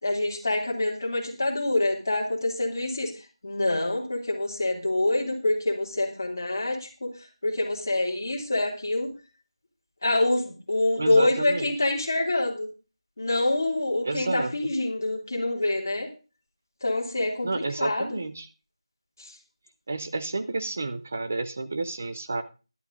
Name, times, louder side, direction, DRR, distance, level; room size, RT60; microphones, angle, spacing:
voice 1, 0.0-3.1 3.4-7.1 7.4-9.1 10.0-12.7 13.2-16.1 16.8-18.2 19.2-19.3, left 2 dB, 35° left, 0 dB, 2.6 m, -26 dB
voice 2, 11.0-11.7 14.0-14.7 17.4-18.5 19.9-22.4, right 3 dB, 20° right, 11 dB, 0.5 m, -30 dB
11.5 x 11.0 x 3.7 m, 0.33 s
figure-of-eight pair, 180°, 3 cm